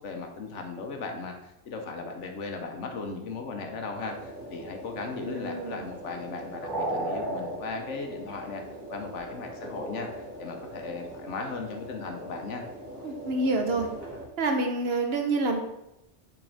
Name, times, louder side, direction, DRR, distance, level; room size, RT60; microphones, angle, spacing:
voice 1, 0.0-8.6 8.9-12.6, left 4 dB, 90° left, 3 dB, 1.2 m, -37 dB
sound 1, 3.9-14.2, right 1 dB, 20° right, 2.2 m, -38 dB
voice 2, 5.1-5.9 13.0-13.9 14.4-15.6, right 2 dB, 60° right, 4 dB, 1.1 m, -28 dB
6.1 x 4.9 x 3.4 m, 0.88 s
omnidirectional pair, 1.2 m